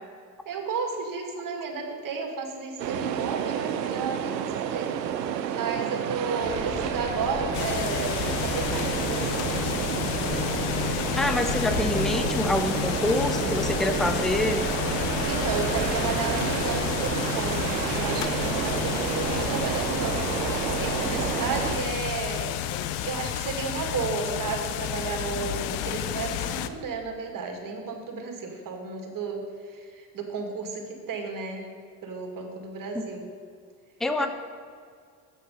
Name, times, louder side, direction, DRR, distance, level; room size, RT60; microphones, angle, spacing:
voice 1, 0.5-4.9 5.5-8.1 8.4-9.4 15.3-22.5 23.0-31.7 32.0-33.3 34.2-34.3, right 4 dB, 40° right, 3 dB, 1.9 m, -33 dB
sound 1, 2.8-21.8, right 9 dB, 90° right, 0.6 m, -30 dB
sound 2, 6.4-21.9, left 2 dB, 25° left, 1.4 m, -35 dB
sound 3, 7.5-26.7, left 11 dB, 65° left, 0.7 m, -31 dB
voice 2, 11.2-14.7 32.9-33.0 34.0-34.3, left 1 dB, ahead, 8 dB, 0.5 m, -26 dB
7.6 x 6.4 x 6.8 m, 2.1 s
hypercardioid pair, 65°, 49 cm